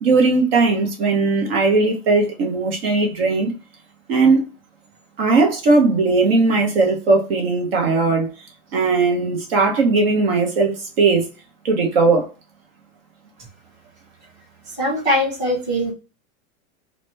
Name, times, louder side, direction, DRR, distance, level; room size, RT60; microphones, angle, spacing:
voice 1, 0.0-3.5 4.1-4.5 5.2-8.3 8.7-11.3 11.6-12.3, right 3 dB, 45° right, 0.8 m, -18 dB
voice 2, 14.6-15.9, left 1 dB, 10° right, 0.6 m, -21 dB
2.9 x 2.1 x 3.2 m
supercardioid pair, 175°, 42 cm